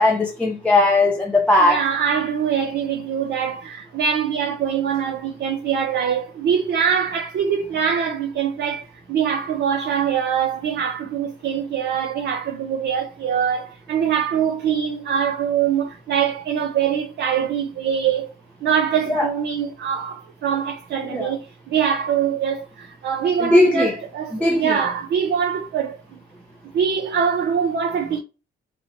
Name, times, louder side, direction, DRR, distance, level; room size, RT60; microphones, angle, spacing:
voice 1, 0.0-1.8 19.1-19.3 21.0-21.3 23.4-24.0 24.3-24.8, left 2 dB, 5° left, 0.4 m, -18 dB
voice 2, 1.6-18.3 18.6-26.0 26.7-28.2, right 7 dB, 60° right, 0.5 m, -23 dB
2.7 x 2.1 x 2.5 m
cardioid pair, 90°, 20 cm